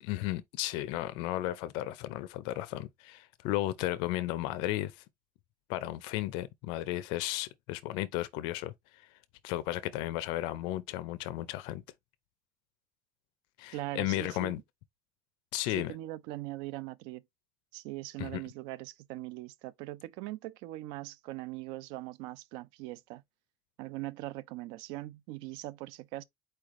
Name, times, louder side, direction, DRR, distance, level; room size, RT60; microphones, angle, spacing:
voice 1, 0.0-5.0 5.7-8.7 9.4-11.8 13.6-14.6 15.5-15.9 18.2-18.4, left 15 dB, 85° left, 0.5 m, -34 dB
voice 2, 13.7-14.5 15.7-17.2 17.7-23.2 23.8-26.2, right 17 dB, 90° right, 0.4 m, -41 dB
4.5 x 3.2 x 3.6 m
cardioid pair, 175°, 8 cm